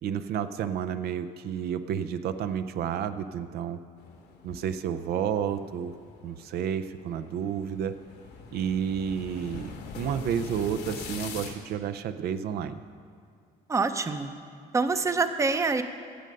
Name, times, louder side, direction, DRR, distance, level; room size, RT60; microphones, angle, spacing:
voice 1, 0.0-3.8 4.4-5.9 6.2-8.0 8.5-12.8, right 8 dB, 70° right, 11 dB, 0.5 m, -31 dB
sound 1, 4.0-11.6, left 5 dB, 75° left, 1.4 m, -44 dB
voice 2, 13.7-14.3 14.7-15.8, right 4 dB, 20° right, 9 dB, 0.6 m, -25 dB
16.5 x 6.5 x 5.3 m, 2.4 s
cardioid pair, 110°, 17 cm